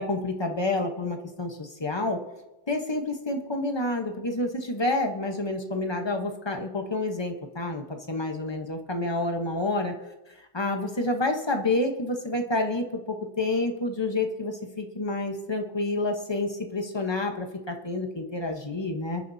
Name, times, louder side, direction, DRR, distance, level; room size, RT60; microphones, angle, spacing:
voice 1, 0.0-2.2 2.7-9.9 10.5-19.2, left 2 dB, 45° left, 3 dB, 0.3 m, -29 dB
28.0 x 10.0 x 2.7 m, 1.0 s
omnidirectional pair, 2.2 m